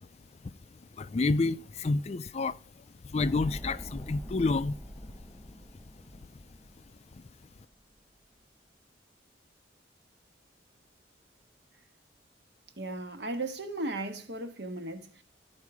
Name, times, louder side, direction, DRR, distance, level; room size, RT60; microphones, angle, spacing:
voice 1, 1.0-2.6 3.1-4.8, left 3 dB, 35° left, 0.4 m, -29 dB
sound 1, 3.2-7.5 7.7-7.8, equal, ahead, 1.3 m, -44 dB
voice 2, 12.8-15.2, right 2 dB, 65° right, 1.4 m, -36 dB
13.5 x 4.6 x 4.8 m
head